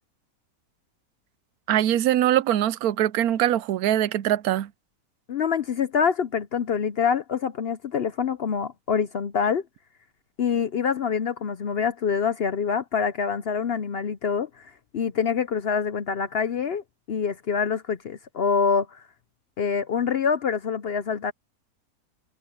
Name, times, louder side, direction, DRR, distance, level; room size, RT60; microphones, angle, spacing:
voice 1, 1.7-4.7, right 12 dB, 80° right, 1.1 m, -22 dB
voice 2, 5.3-9.6 10.4-19.0 19.6-21.3, left 6 dB, 55° left, 0.7 m, -26 dB
omnidirectional pair, 1.6 m